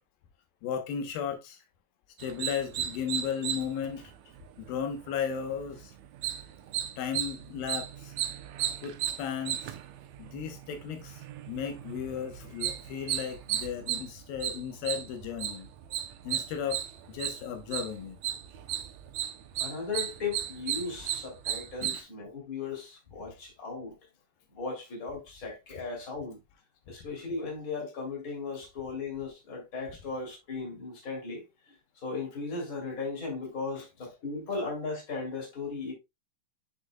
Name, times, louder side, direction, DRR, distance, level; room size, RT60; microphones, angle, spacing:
voice 1, 0.6-1.6 2.2-4.1 4.6-5.9 7.0-8.1 8.8-9.7 10.2-15.7 16.2-16.8 17.1-18.2 21.8-22.0, left 8 dB, 85° left, 2.8 m, -35 dB
sound 1, 2.2-22.0, right 11 dB, 80° right, 1.6 m, -36 dB
voice 2, 19.6-24.0 24.5-26.4 26.9-31.7 32.0-35.9, left 4 dB, 25° left, 2.9 m, -37 dB
7.9 x 6.4 x 2.2 m
omnidirectional pair, 4.1 m